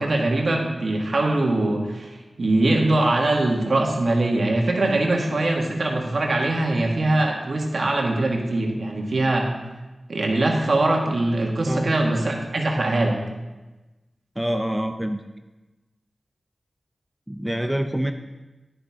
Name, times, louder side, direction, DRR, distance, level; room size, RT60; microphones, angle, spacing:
voice 1, 0.0-9.5 10.1-13.2, right 2 dB, 65° right, 0 dB, 1.8 m, -22 dB
voice 2, 11.7-12.0 14.4-15.2 17.3-18.1, equal, 10° right, 6 dB, 0.6 m, -26 dB
10.5 x 10.0 x 3.7 m, 1.1 s
cardioid pair, 50°, 0 cm